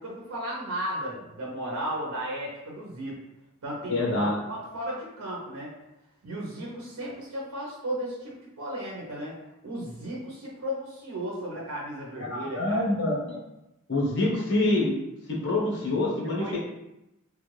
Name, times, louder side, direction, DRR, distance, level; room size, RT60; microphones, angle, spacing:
voice 1, 0.0-3.2 3.6-5.7 6.2-9.4 9.6-12.9 16.4-16.6, right 1 dB, 90° right, -4 dB, 0.8 m, -35 dB
voice 2, 3.9-4.4 12.3-13.4 13.9-14.9 15.3-16.6, left 2 dB, 55° left, -4 dB, 1.0 m, -26 dB
3.2 x 2.4 x 3.2 m, 0.90 s
head